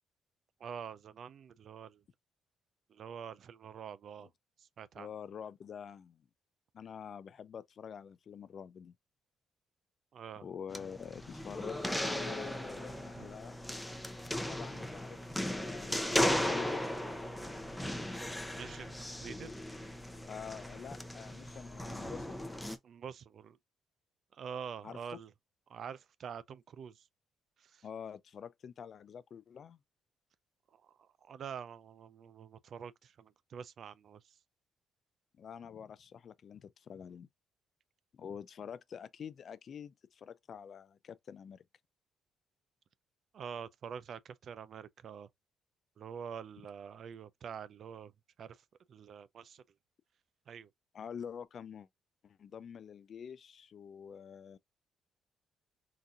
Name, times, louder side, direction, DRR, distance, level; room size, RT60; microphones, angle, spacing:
voice 1, 0.6-2.0 2.9-4.3 4.6-5.1 10.1-10.5 13.1-13.3 18.5-19.5 22.8-23.6 24.3-25.3 25.7-27.0 27.6-27.8 30.7-34.2 43.3-45.3 46.0-48.1 48.4-48.6 48.9-49.6 50.5-50.7, right 7 dB, 60° right, 0.4 m, -46 dB
voice 2, 5.0-6.3 6.7-8.9 10.4-13.6 14.5-16.8 20.3-22.5 24.8-25.0 27.8-29.8 35.4-37.3 38.1-41.6 50.9-51.9 52.2-54.6, left 7 dB, 55° left, 0.3 m, -47 dB
sound 1, 10.7-22.8, left 1 dB, 5° left, 0.6 m, -37 dB
3.9 x 2.6 x 2.3 m
cardioid pair, 90°, 0 cm